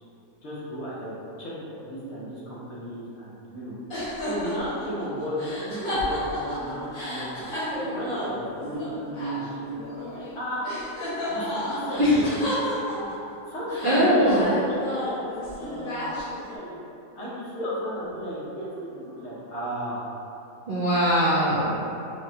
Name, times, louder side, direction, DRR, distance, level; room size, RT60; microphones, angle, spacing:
voice 1, 0.4-1.1 1.4-1.5 1.8-3.8 4.2-7.4 7.8-10.7 11.3-12.2 12.6-13.1 13.5-15.2 15.5-16.8 17.1-20.1, equal, 65° left, -8 dB, 1.2 m, -34 dB
sound 1, 3.9-10.4 10.6-13.3 13.7-16.5, left 1 dB, 80° left, 1.7 m, -32 dB
voice 2, 13.8-14.5 20.7-21.8, equal, 60° right, -10 dB, 0.5 m, -21 dB
5.0 x 2.1 x 2.7 m, 2.9 s
omnidirectional pair, 1.5 m